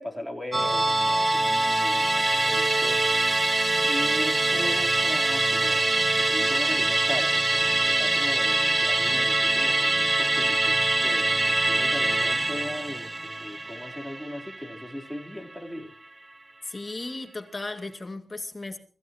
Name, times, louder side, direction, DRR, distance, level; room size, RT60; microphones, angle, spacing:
voice 1, 0.0-3.1 3.8-15.9, left 1 dB, ahead, 4.0 m, -38 dB
Musical instrument, 0.5-15.2 15.5-15.6, right 2 dB, 25° right, 0.6 m, -24 dB
Wind instrument woodwind instrument, 2.5-6.8, right 6 dB, 85° right, 4.0 m, -35 dB
voice 2, 16.6-18.8, left 2 dB, 30° left, 2.3 m, -35 dB
25.0 x 15.5 x 3.1 m
wide cardioid pair, 75°, 0 cm